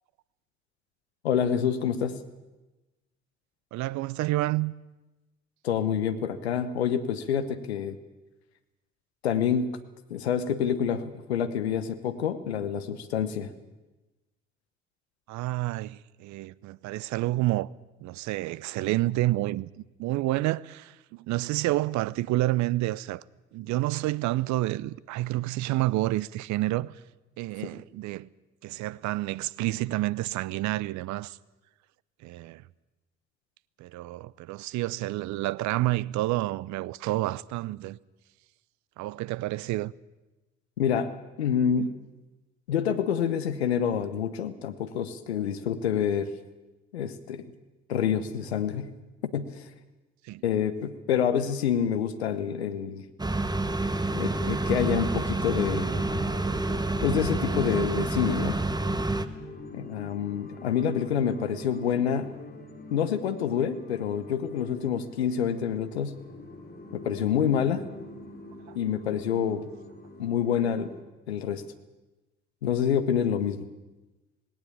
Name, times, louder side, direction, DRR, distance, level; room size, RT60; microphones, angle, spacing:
voice 1, 1.2-2.2 5.6-8.0 9.2-9.7 10.1-13.5 40.8-41.1 41.4-41.9 42.7-46.3 46.9-47.4 47.9-48.9 49.3-49.7 50.4-53.1 54.1-56.3 57.0-58.6 59.7-62.3 62.9-66.2 66.9-67.8 68.7-69.7 70.2-70.9 71.3-71.6 72.6-73.7, left 8 dB, 90° left, 1.0 m, -27 dB
voice 2, 3.7-4.7 15.3-17.7 18.0-23.2 23.5-27.0 27.4-28.3 28.6-31.4 32.2-32.6 33.8-38.0 39.0-39.9 50.2-50.4 68.7-68.8, right 17 dB, 65° right, 0.7 m, -29 dB
sound 1, 53.2-59.3, right 2 dB, 15° right, 1.7 m, -28 dB
sound 2, 54.5-71.0, left 2 dB, 30° left, 5.1 m, -45 dB
18.5 x 18.0 x 8.6 m
hypercardioid pair, 45°, 31 cm